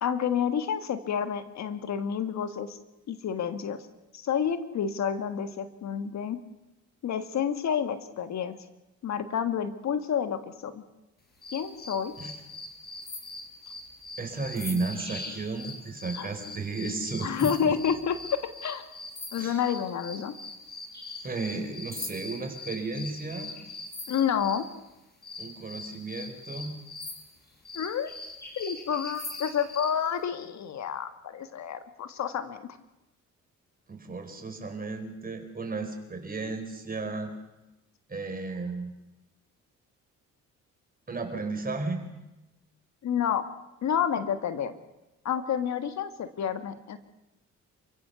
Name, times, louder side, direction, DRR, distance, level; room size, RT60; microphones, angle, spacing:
voice 1, 0.0-2.8 3.1-3.8 4.1-6.4 7.0-8.6 9.0-10.8 11.5-12.1 16.1-16.3 17.2-18.2 18.6-18.8 19.3-20.3 24.1-24.7 27.7-28.1 28.6-32.6 43.0-43.4 43.8-44.7 45.2-47.0, left 8 dB, 65° left, 10 dB, 1.6 m, -29 dB
sound 1, 11.4-24.7 25.2-30.0, left 2 dB, 30° left, 5.5 m, -41 dB
voice 2, 14.2-17.7 19.4-19.6 21.2-23.6 25.4-26.8 33.9-37.3 38.1-38.9 41.1-42.0, right 3 dB, 30° right, 5 dB, 4.6 m, -34 dB
28.0 x 16.0 x 7.0 m, 0.99 s
cardioid pair, 90°, 30 cm